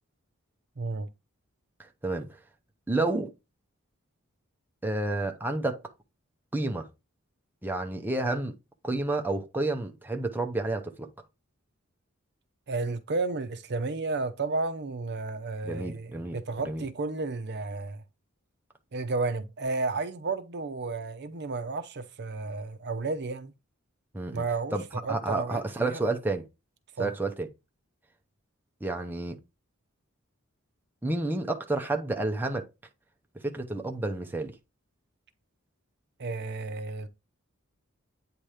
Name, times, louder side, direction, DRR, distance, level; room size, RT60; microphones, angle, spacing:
voice 1, 0.8-1.1 12.7-18.0 18.9-23.5 24.3-24.8 25.0-26.1 27.0-27.1 36.2-37.1, right 3 dB, 55° right, 0.6 m, -32 dB
voice 2, 1.8-2.3 2.9-3.3 4.8-5.8 6.5-6.9 7.6-8.5 8.8-11.1 15.6-16.8 24.1-24.4 24.7-24.8 25.1-26.4 27.0-27.5 28.8-29.4 31.0-32.7 33.4-34.6, right 2 dB, 10° right, 0.6 m, -30 dB
8.8 x 2.9 x 4.8 m
head